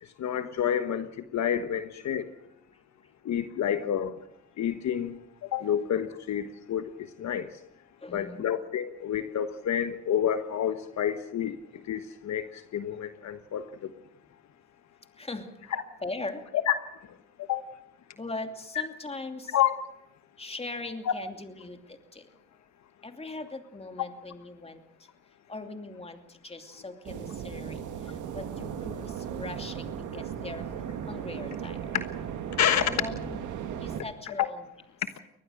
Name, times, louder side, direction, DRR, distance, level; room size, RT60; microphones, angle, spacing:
voice 1, 0.2-1.1 1.3-2.3 3.2-4.2 4.6-7.5 8.1-11.6 11.9-13.9 15.7-15.8 16.7-16.8 17.4-17.6 19.5-19.7 31.9-32.0 32.6-32.8 34.3-34.5, left 9 dB, 65° left, 10 dB, 1.3 m, -29 dB
voice 2, 8.0-8.5 15.2-15.6 16.0-16.5 18.2-19.6 20.4-22.3 23.0-25.1 25.5-30.8 31.0-31.9 32.8-33.4 33.8-34.7, left 2 dB, 20° left, 6 dB, 2.7 m, -40 dB
sound 1, 27.0-34.0, right 8 dB, 85° right, 2.1 m, -36 dB
23.0 x 19.5 x 6.4 m, 0.81 s
cardioid pair, 90°, 30 cm